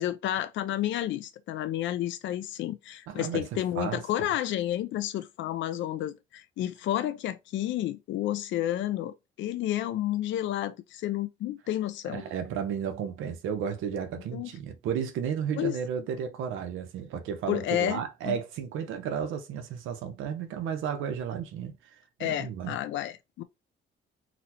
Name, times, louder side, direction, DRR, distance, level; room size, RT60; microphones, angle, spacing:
voice 1, 0.0-12.2 14.3-14.5 15.6-15.8 17.5-18.4 22.2-23.4, left 12 dB, 70° left, 0.4 m, -31 dB
voice 2, 3.1-3.5 3.7-4.0 12.1-22.8, right 8 dB, 90° right, 0.6 m, -33 dB
4.0 x 2.0 x 2.8 m
cardioid pair, 90°, 20 cm